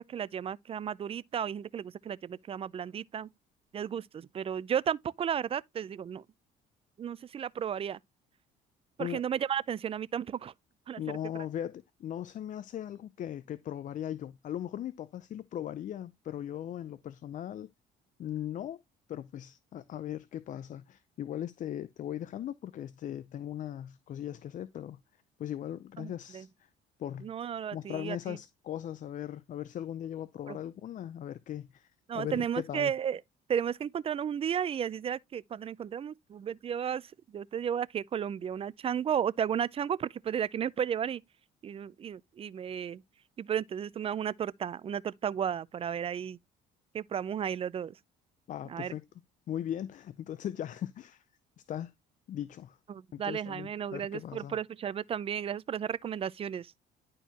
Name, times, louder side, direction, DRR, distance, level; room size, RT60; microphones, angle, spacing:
voice 1, 0.0-3.3 3.7-6.2 7.0-8.0 9.0-10.5 10.9-11.0 11.3-11.4 26.0-26.5 27.2-28.4 30.5-30.6 32.1-33.2 33.5-41.2 41.6-43.0 43.4-46.4 46.9-48.0 48.7-48.9 52.9-56.7, right 8 dB, 35° right, 0.5 m, -33 dB
voice 2, 11.0-17.7 18.2-18.8 19.1-25.0 25.4-26.5 27.0-27.3 27.7-31.9 32.1-32.9 48.5-49.0 49.5-51.2 51.7-51.9 52.3-52.8 53.1-54.6, left 11 dB, 50° left, 0.6 m, -38 dB
11.0 x 4.6 x 2.9 m
cardioid pair, 110°, 17 cm